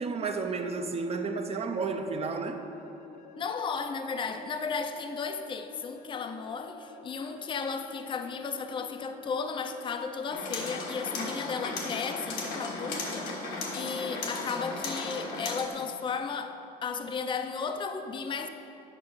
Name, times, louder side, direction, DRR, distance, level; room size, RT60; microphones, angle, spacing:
voice 1, 0.0-2.6, right 4 dB, 35° right, 5 dB, 0.6 m, -32 dB
sound 1, 0.6-15.6, left 3 dB, 70° left, 1.0 m, -51 dB
voice 2, 3.4-16.5 16.8-18.5, left 5 dB, 30° left, 7 dB, 0.5 m, -34 dB
sound 2, 10.3-15.7, left 3 dB, 85° left, 1.5 m, -36 dB
9.7 x 5.6 x 5.5 m, 2.8 s
cardioid pair, 110°, 17 cm